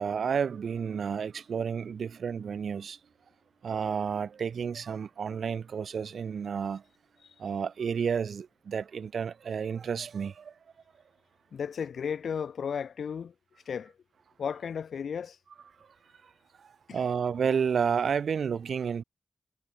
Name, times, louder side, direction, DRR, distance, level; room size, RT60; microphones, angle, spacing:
voice 1, 0.0-3.0 3.6-6.8 7.4-10.5 16.6-19.0, right 6 dB, 80° right, 3.1 m, -31 dB
voice 2, 11.5-13.3 13.7-13.9 14.4-15.4 16.9-17.1, left 7 dB, 90° left, 2.2 m, -34 dB
wide cardioid pair, 105°, 0 cm